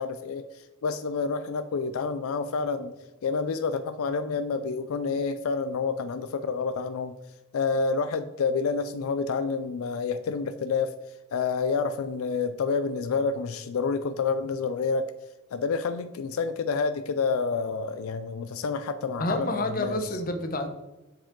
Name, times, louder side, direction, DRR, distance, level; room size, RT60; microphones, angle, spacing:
voice 1, 0.0-2.9 3.2-7.2 7.5-10.9 11.3-15.1 15.5-20.0, left 5 dB, 85° left, 11 dB, 0.4 m, -28 dB
voice 2, 19.2-20.7, left 2 dB, 40° left, 6 dB, 0.8 m, -28 dB
7.2 x 5.0 x 3.7 m, 1.0 s
head